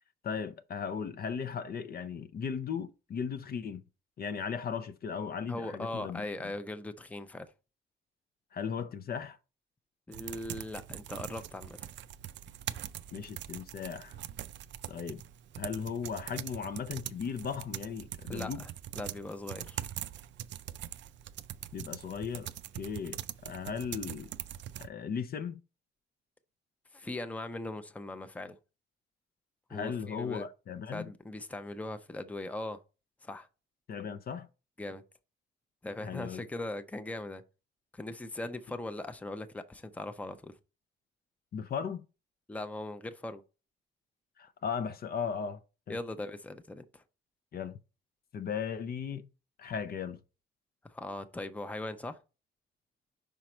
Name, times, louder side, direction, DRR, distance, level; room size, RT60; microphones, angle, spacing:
voice 1, 0.2-3.8 4.2-6.2 8.5-9.4 13.1-14.2 14.9-15.2 15.6-18.6 21.7-24.3 24.8-25.6 29.7-31.1 33.9-34.5 36.0-36.4 41.5-42.1 44.4-45.6 45.9-46.0 47.5-47.8 48.3-49.3 49.6-50.2, left 6 dB, 50° left, 0.6 m, -37 dB
voice 2, 5.5-7.5 10.1-11.9 18.3-18.7 19.0-19.8 26.9-28.6 29.7-30.5 30.9-32.8 33.2-33.5 34.8-35.0 35.8-37.4 37.9-40.5 42.5-43.4 45.9-47.0 50.9-52.2, left 2 dB, 5° left, 0.6 m, -40 dB
sound 1, 10.1-24.9, right 11 dB, 65° right, 0.4 m, -43 dB
5.1 x 4.6 x 4.3 m
cardioid pair, 90°, 20 cm